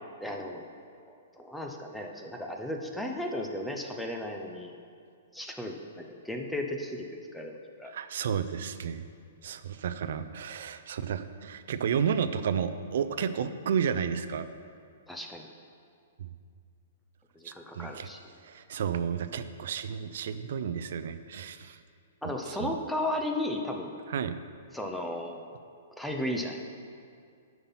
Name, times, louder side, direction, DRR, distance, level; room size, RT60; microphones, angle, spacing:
voice 1, 0.2-0.6 1.4-4.7 5.3-7.1 7.3-7.9 15.1-15.5 17.4-18.2 22.2-23.9 24.7-25.5 26.0-26.6, left 1 dB, 5° left, 2 dB, 0.8 m, -35 dB
voice 2, 7.8-9.0 9.4-14.5 16.2-16.3 17.4-18.1 18.4-21.8 22.2-22.8 24.1-24.4, right 7 dB, 65° right, 12 dB, 0.5 m, -32 dB
9.6 x 5.9 x 5.7 m, 2.3 s
hypercardioid pair, 140°, 0 cm